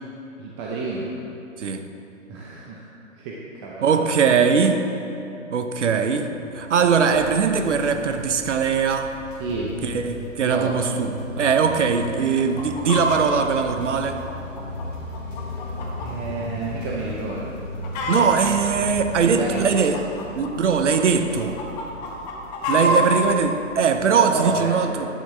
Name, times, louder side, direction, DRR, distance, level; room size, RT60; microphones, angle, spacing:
voice 1, 0.4-1.1 2.3-2.8 3.2-4.0 9.4-9.7 10.4-10.8 12.1-12.3 16.0-17.4 19.2-19.8 22.7-23.0 24.3-24.7, right 4 dB, 20° right, -4 dB, 0.8 m, -30 dB
voice 2, 3.8-4.8 5.5-9.1 9.8-14.2 18.1-21.6 22.7-25.1, right 6 dB, 65° right, 7 dB, 0.9 m, -21 dB
sound 1, 6.0-20.2, left 1 dB, 5° left, 1.2 m, -37 dB
sound 2, 6.8-24.4, left 3 dB, 70° left, 2.3 m, -43 dB
Chicken rooster, 12.4-13.2 13.8-16.1 16.4-16.5 17.1-17.3 17.6-18.5 19.2-21.0 21.4-23.2 23.9-24.0, equal, 30° left, 1.4 m, -26 dB
11.5 x 9.7 x 3.4 m, 2.8 s
figure-of-eight pair, 130°, 39 cm